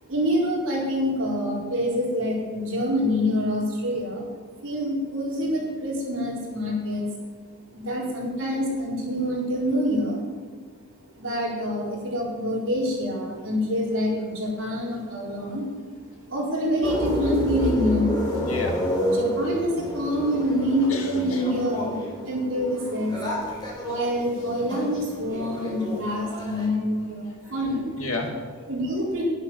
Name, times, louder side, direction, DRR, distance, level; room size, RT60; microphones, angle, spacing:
voice 1, 0.1-4.3 4.6-7.0 7.7-10.2 11.2-15.7 16.3-18.2 19.1-22.0 22.3-23.2 23.8-27.9 28.7-29.2, equal, 55° right, -4 dB, 4.4 m, -26 dB
sound 1, 16.8-26.7, equal, 20° left, 4.4 m, -30 dB
voice 2, 18.4-19.1 20.9-21.4 27.4-27.5 28.0-28.7, left 2 dB, 70° left, 1 dB, 2.3 m, -32 dB
11.5 x 10.5 x 7.2 m, 1.5 s
head